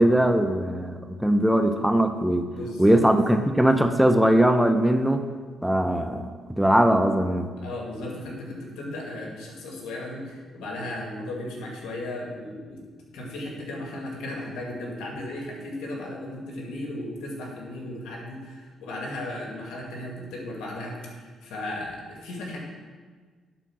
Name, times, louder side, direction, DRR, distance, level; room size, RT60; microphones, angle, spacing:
voice 1, 0.0-2.5 2.8-5.2 5.6-7.5, right 1 dB, 5° right, 7 dB, 0.6 m, -20 dB
voice 2, 2.4-3.0 7.6-12.8 13.1-22.6, left 1 dB, 90° left, -1 dB, 2.2 m, -35 dB
11.0 x 4.5 x 6.0 m, 1.5 s
cardioid pair, 90°, 0 cm